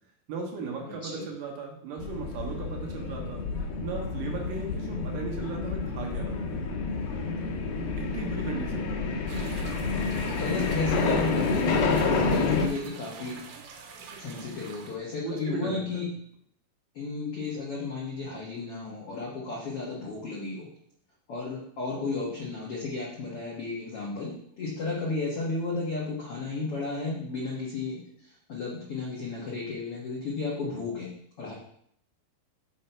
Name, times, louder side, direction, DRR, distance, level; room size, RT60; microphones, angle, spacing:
voice 1, 0.3-3.4 3.8-6.4 8.0-9.0 15.2-16.0, right 4 dB, 65° right, 0 dB, 2.4 m, -37 dB
voice 2, 0.8-1.3 10.4-13.4 14.2-16.0 16.9-20.7 21.3-31.1 31.4-31.5, left 3 dB, 85° left, -5 dB, 1.2 m, -33 dB
sound 1, 2.0-12.7, left 4 dB, 70° left, 2.4 m, -29 dB
sound 2, 9.3-15.0, right 5 dB, 85° right, 2.9 m, -46 dB
6.5 x 5.6 x 4.5 m, 0.67 s
omnidirectional pair, 4.8 m